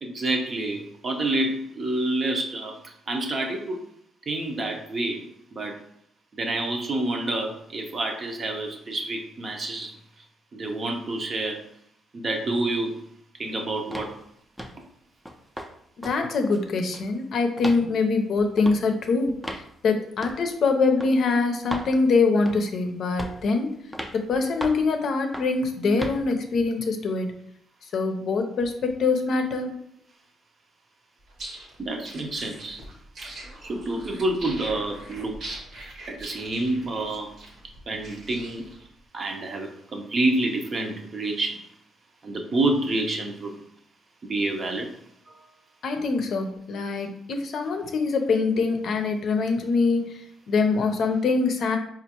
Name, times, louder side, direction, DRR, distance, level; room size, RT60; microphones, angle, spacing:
voice 1, 0.0-2.8 3.1-3.8 4.3-5.2 5.5-5.8 6.3-10.0 10.5-11.7 12.1-13.0 13.4-14.2 25.8-26.0 29.7-29.8 31.8-32.8 33.2-33.3 33.6-35.3 36.1-37.4 37.9-38.7 39.1-41.6 42.2-43.6 44.3-44.9 45.3-45.4, right 2 dB, 40° right, 3 dB, 0.6 m, -28 dB
sound 1, 13.9-14.2 14.6-14.8 15.3-15.7 16.0-16.2 16.5-17.1 17.6-17.8 18.6-18.8 19.4-19.7 20.2-20.4 21.0-21.1 21.7-21.9 22.5-22.7 23.2-23.5 23.9-24.2 24.6-24.9 25.3-25.6 26.0-26.2, equal, 5° right, 0.5 m, -35 dB
voice 2, 16.0-19.4 19.8-23.7 24.1-27.3 27.9-29.7 45.8-50.2 50.5-51.8, left 4 dB, 65° left, 5 dB, 0.5 m, -24 dB
sound 2, 31.3-38.9, right 1 dB, 65° right, 1.1 m, -42 dB
4.4 x 2.4 x 2.9 m, 0.70 s
cardioid pair, 90°, 0 cm